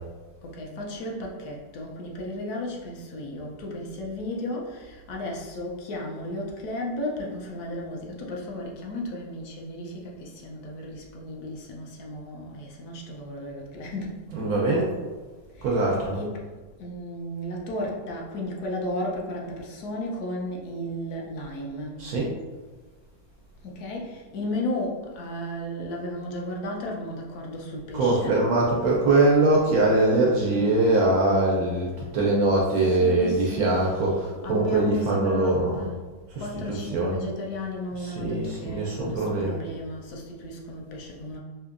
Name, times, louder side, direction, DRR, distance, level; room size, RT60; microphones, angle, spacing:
voice 1, 0.4-14.2 15.6-16.4 16.8-22.0 23.6-28.5 30.1-30.7 32.8-34.2 34.4-36.0 36.4-41.4, left 1 dB, 65° left, -2 dB, 1.0 m, -34 dB
voice 2, 14.3-14.9 15.6-16.2 22.0-22.3 27.9-35.8 36.3-37.2 37.9-39.6, right 2 dB, 70° right, -2 dB, 0.9 m, -22 dB
4.3 x 2.7 x 2.5 m, 1.3 s
omnidirectional pair, 2.1 m